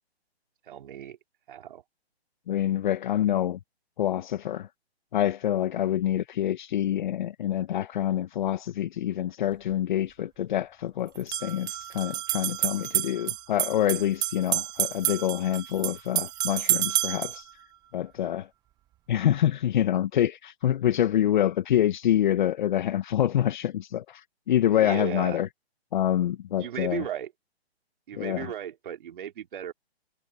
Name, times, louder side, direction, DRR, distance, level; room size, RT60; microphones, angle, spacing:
voice 1, 0.7-1.2 1.5-1.8 5.8-6.0 18.2-18.4 24.7-25.4 26.6-27.3 28.1-29.7, right 10 dB, 50° right, 3.4 m, -36 dB
voice 2, 2.5-3.6 4.0-4.7 5.1-17.5 17.9-18.5 19.1-25.5 25.9-27.0 28.1-28.5, left 11 dB, 45° left, 1.3 m, -26 dB
sound 1, 9.5-9.6 11.1-17.4, right 13 dB, 10° right, 0.9 m, -29 dB
hypercardioid pair, 145°, 32 cm